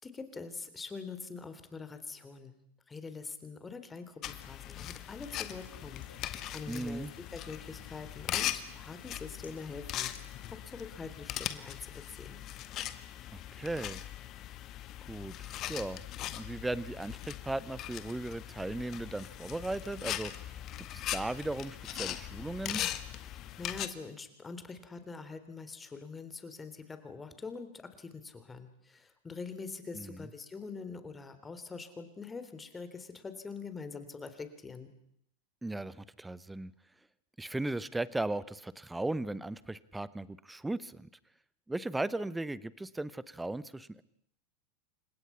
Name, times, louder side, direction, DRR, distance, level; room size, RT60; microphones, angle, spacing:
voice 1, 0.0-2.5 2.9-6.1 6.5-7.1 7.3-12.4 23.2-34.9, left 4 dB, 15° left, 10 dB, 3.5 m, -44 dB
sound 1, 4.2-23.9, left 12 dB, 40° left, 1.8 m, -40 dB
Rain, 5.2-10.7, left 6 dB, 75° left, 4.2 m, -59 dB
voice 2, 6.7-7.1 13.3-14.1 15.1-16.0 16.3-20.5 20.9-22.8 29.9-30.3 35.6-36.7 37.4-41.1 41.7-44.0, right 2 dB, 5° right, 18 dB, 1.2 m, -37 dB
29.5 x 25.5 x 5.8 m, 0.72 s
figure-of-eight pair, 85°, 0 cm